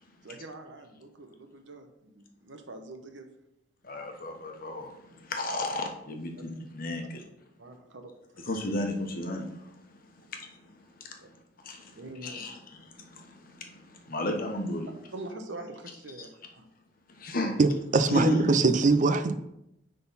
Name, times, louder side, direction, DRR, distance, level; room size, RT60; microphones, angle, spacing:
voice 1, 0.2-3.3 6.4-6.5 7.6-8.4 11.2-11.3 12.0-12.5 15.1-16.7, right 2 dB, 90° right, 5 dB, 1.0 m, -44 dB
voice 2, 3.9-4.9 5.3-7.0 8.5-9.4 11.7-11.8 12.2-12.5 14.1-14.9 17.2-17.5 18.1-18.6, left 1 dB, 50° left, 3 dB, 1.1 m, -31 dB
voice 3, 17.6-19.4, right 3 dB, 45° right, 10 dB, 0.5 m, -22 dB
9.7 x 3.9 x 4.1 m, 0.82 s
head